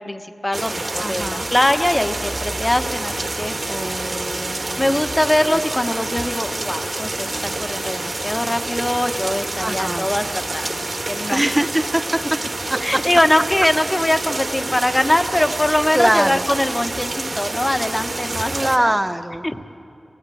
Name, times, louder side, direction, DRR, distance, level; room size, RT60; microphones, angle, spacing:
voice 1, 0.0-3.5 4.8-11.4 12.8-18.5 18.8-19.0 19.4-19.6, left 1 dB, 20° left, 7 dB, 1.2 m, -22 dB
sound 1, 0.5-18.8, right 2 dB, 45° right, 1.5 m, -27 dB
voice 2, 1.0-1.5 3.6-5.0 5.5-5.6 9.6-10.1 11.3-12.4 12.7-13.0 15.9-16.4 18.5-19.4, right 1 dB, 15° right, 8 dB, 0.7 m, -23 dB
28.0 x 17.0 x 8.5 m, 2.6 s
wide cardioid pair, 75°, 0 cm